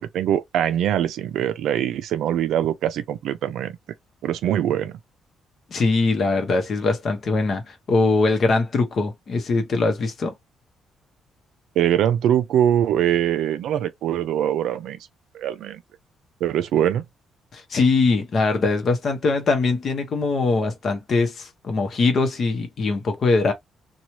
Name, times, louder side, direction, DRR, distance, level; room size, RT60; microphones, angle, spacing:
voice 1, 0.0-3.8 4.2-5.0 11.8-15.0 15.3-15.8 16.4-17.0, right 10 dB, 80° right, 0.4 m, -22 dB
voice 2, 5.7-10.3 17.5-23.5, left 3 dB, 40° left, 0.9 m, -22 dB
3.0 x 2.3 x 2.8 m
cardioid pair, 160°, 0 cm